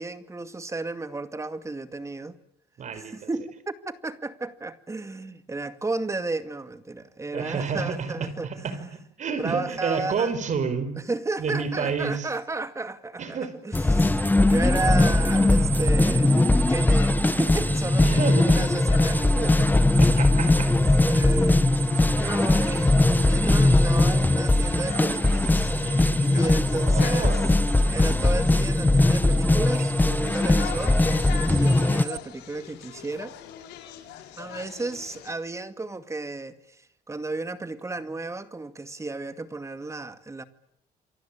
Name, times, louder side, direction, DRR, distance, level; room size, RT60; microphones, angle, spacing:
voice 1, 0.0-2.4 2.9-8.9 9.4-10.4 11.1-14.2 14.5-20.1 20.7-21.6 22.1-25.7 26.3-27.4 27.9-31.0 31.5-33.4 34.4-40.4, right 3 dB, 15° right, 2.2 m, -33 dB
voice 2, 2.8-3.3 7.3-8.8 9.2-10.9 11.4-12.3 13.2-13.5 18.0-18.6 20.0-20.7 26.7-27.6, right 5 dB, 45° right, 5.7 m, -29 dB
sound 1, 13.7-32.0, left 2 dB, 10° left, 1.2 m, -20 dB
sound 2, 14.2-32.2, right 14 dB, 80° right, 1.9 m, -36 dB
sound 3, 18.9-35.3, left 11 dB, 85° left, 4.5 m, -42 dB
28.0 x 23.5 x 8.9 m
cardioid pair, 110°, 17 cm